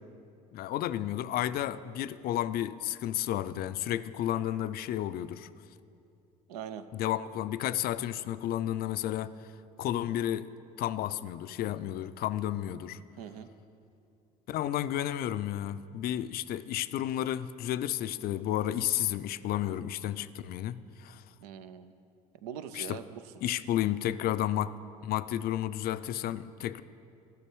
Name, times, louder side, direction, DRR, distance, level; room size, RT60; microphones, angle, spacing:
voice 1, 0.5-5.5 6.9-9.4 9.8-10.5 10.8-13.0 14.5-21.2 22.7-23.0 23.4-24.7 25.0-26.8, left 12 dB, 55° left, 0.4 m, -32 dB
voice 2, 6.5-6.8 13.2-13.5 21.4-21.9 22.4-23.2, right 8 dB, 85° right, 0.5 m, -42 dB
14.0 x 6.0 x 4.6 m
hypercardioid pair, 70°, 19 cm